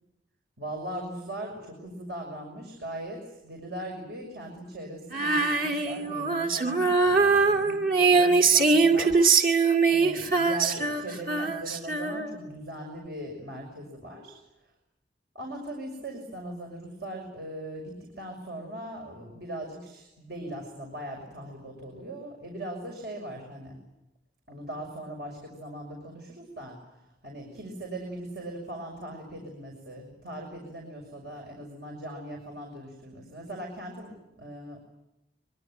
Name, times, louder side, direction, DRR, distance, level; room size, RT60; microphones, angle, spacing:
voice 1, 0.6-9.2 9.9-14.4 15.3-23.8 24.5-34.8, right 1 dB, 70° right, 0 dB, 6.2 m, -39 dB
Female singing, 5.1-12.5, right 4 dB, 50° right, 2.6 m, -23 dB
24.5 x 23.5 x 9.2 m, 0.89 s
head